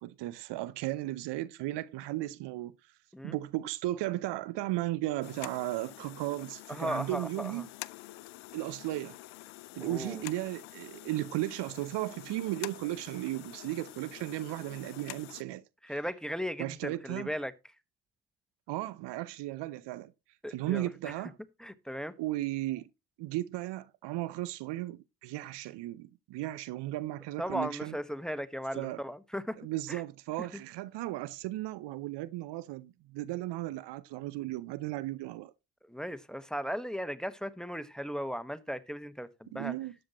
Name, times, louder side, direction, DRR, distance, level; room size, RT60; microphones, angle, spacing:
voice 1, 0.0-2.7 3.2-7.7 8.5-9.2 9.7-16.0 16.6-17.3 18.7-20.1 20.5-21.4 22.2-22.9 23.2-28.0 28.7-29.0 29.6-35.5 39.5-39.9, right 16 dB, 70° right, 0.7 m, -35 dB
sound 1, 5.2-15.4, left 21 dB, 80° left, 0.6 m, -47 dB
voice 2, 6.7-7.6 9.8-10.2 15.8-17.5 20.4-21.1 21.6-22.1 27.4-29.6 29.9-30.0 30.4-30.5 35.9-39.7, equal, ahead, 1.3 m, -37 dB
13.0 x 9.7 x 3.0 m
hypercardioid pair, 40°, 43 cm